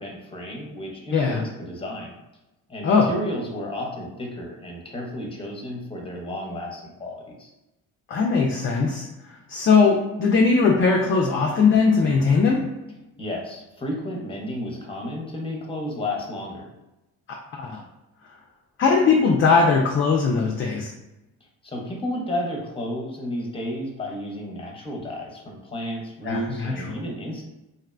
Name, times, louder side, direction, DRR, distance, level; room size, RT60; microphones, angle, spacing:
voice 1, 0.0-2.1 2.7-7.5 13.2-16.7 21.6-27.4, left 1 dB, 15° left, 0 dB, 0.7 m, -32 dB
voice 2, 1.1-1.4 2.8-3.1 8.1-9.1 9.5-12.6 17.6-17.8 18.8-20.9 26.2-27.0, left 4 dB, 35° left, 0 dB, 0.4 m, -19 dB
2.6 x 2.1 x 2.4 m, 0.99 s
supercardioid pair, 70°, 37 cm